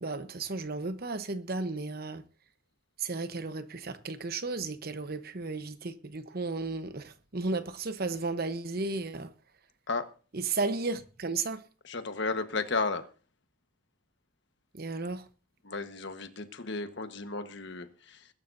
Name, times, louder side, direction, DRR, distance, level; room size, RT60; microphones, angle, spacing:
voice 1, 0.0-2.2 3.0-9.3 10.3-11.6 14.7-15.2, right 3 dB, 50° right, 1.0 m, -34 dB
voice 2, 11.8-13.1 15.6-18.3, left 3 dB, 60° left, 1.3 m, -34 dB
21.5 x 12.0 x 2.7 m
head